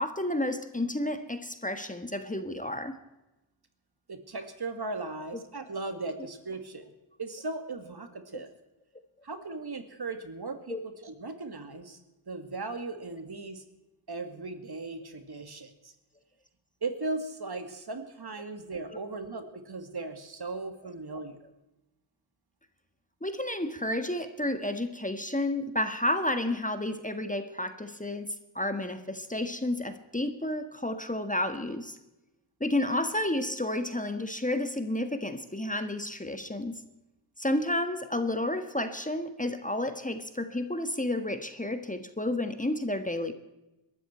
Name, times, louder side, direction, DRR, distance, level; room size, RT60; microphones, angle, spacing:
voice 1, 0.0-2.9 8.3-8.4 10.7-10.8 18.9-19.0 23.2-32.0 32.6-36.7 37.4-43.3, left 1 dB, 15° left, 8 dB, 1.6 m, -31 dB
voice 2, 4.1-6.9 7.2-8.5 9.2-12.0 12.3-13.6 14.1-15.9 16.8-21.4, right 3 dB, 50° right, 7 dB, 2.3 m, -37 dB
22.0 x 13.0 x 4.5 m, 0.98 s
cardioid pair, 50°, 48 cm